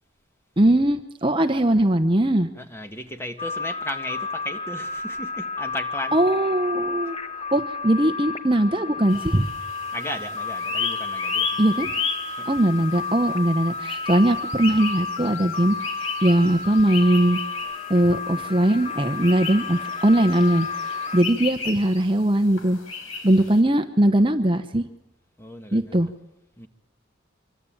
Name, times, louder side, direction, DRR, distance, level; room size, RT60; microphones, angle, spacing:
voice 1, 0.6-2.5 6.1-7.1 7.5-9.5 11.6-11.9 12.5-15.8 16.2-17.4 17.9-22.8 23.2-24.8 25.7-26.1, right 1 dB, 25° right, 7 dB, 1.1 m, -20 dB
voice 2, 2.6-6.2 9.9-11.6 12.4-12.6 13.7-13.8 21.1-21.4 25.4-26.1 26.6-26.7, left 1 dB, 10° left, 7 dB, 1.7 m, -35 dB
sound 1, 3.4-21.2, left 4 dB, 30° left, 1.3 m, -32 dB
sound 2, 9.1-23.6, left 5 dB, 75° left, 5.2 m, -34 dB
26.0 x 24.0 x 8.8 m, 0.99 s
head